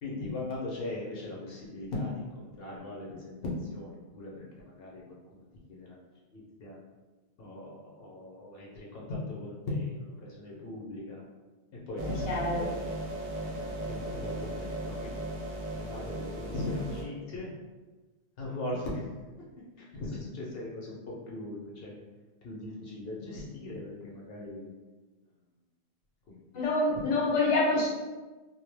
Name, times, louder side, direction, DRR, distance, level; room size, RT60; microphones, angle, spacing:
voice 1, 0.0-5.2 5.7-6.0 6.3-6.8 7.4-11.2 11.9-13.0 13.4-15.3 15.7-17.5 18.4-19.1 19.4-22.0 22.4-24.7 26.3-27.0, left 2 dB, 65° left, -4 dB, 0.8 m, -39 dB
sound 1, 12.0-17.0, right 1 dB, 65° right, 0.7 m, -37 dB
voice 2, 12.3-12.7 26.5-27.9, left 2 dB, 35° left, -4 dB, 0.6 m, -26 dB
2.2 x 2.1 x 3.2 m, 1.2 s
omnidirectional pair, 1.1 m